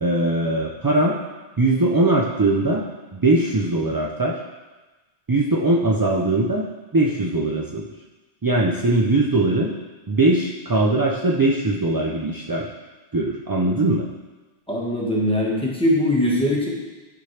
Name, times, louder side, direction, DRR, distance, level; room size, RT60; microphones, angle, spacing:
voice 1, 0.0-1.2 1.6-2.8 3.1-4.4 5.3-6.7 6.9-7.9 8.4-9.7 10.1-12.7 13.1-14.0, right 2 dB, 35° right, -3 dB, 0.3 m, -20 dB
voice 2, 14.7-16.7, left 1 dB, 5° left, -5 dB, 1.3 m, -21 dB
11.0 x 4.3 x 3.3 m, 1.2 s
omnidirectional pair, 1.1 m